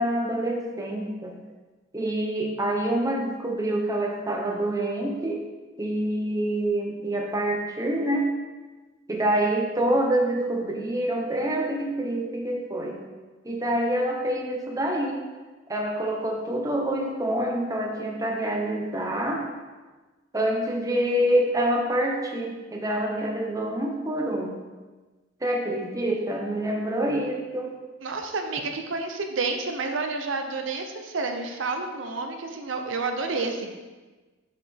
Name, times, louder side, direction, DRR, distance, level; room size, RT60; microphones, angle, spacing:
voice 1, 0.0-1.3 1.9-5.4 5.8-8.3 9.1-13.0 13.4-15.2 15.7-19.4 20.3-24.6 25.4-27.7, right 1 dB, 20° right, 0 dB, 0.8 m, -26 dB
voice 2, 28.0-33.8, right 3 dB, 85° right, 5 dB, 0.7 m, -30 dB
7.5 x 4.9 x 3.5 m, 1.3 s
head